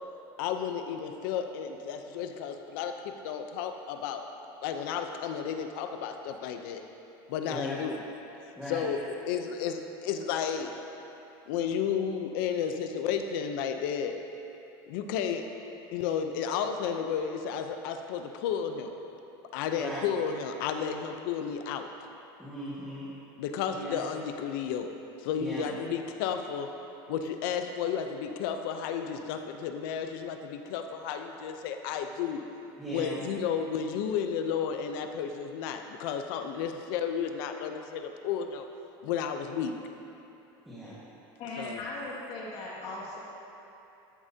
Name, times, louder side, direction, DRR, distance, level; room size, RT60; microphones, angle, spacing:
voice 1, 0.4-4.2 4.6-6.8 7.3-8.0 8.7-9.0 9.3-10.8 11.5-14.2 14.9-15.5 15.9-18.9 19.5-21.9 23.4-24.9 25.2-26.7 27.1-32.4 32.9-38.7 39.0-39.7 41.6-41.8, left 7 dB, 70° left, 6 dB, 0.7 m, -32 dB
voice 2, 7.5-7.8 8.5-8.9 19.8-20.0 22.4-23.1 23.7-24.0 25.4-25.6 32.8-33.2 40.7-41.0 41.5-41.6, equal, ahead, -11 dB, 1.7 m, -38 dB
voice 3, 41.4-43.2, left 2 dB, 50° left, -5 dB, 2.1 m, -38 dB
13.5 x 8.7 x 2.8 m, 2.9 s
cardioid pair, 155°, 12 cm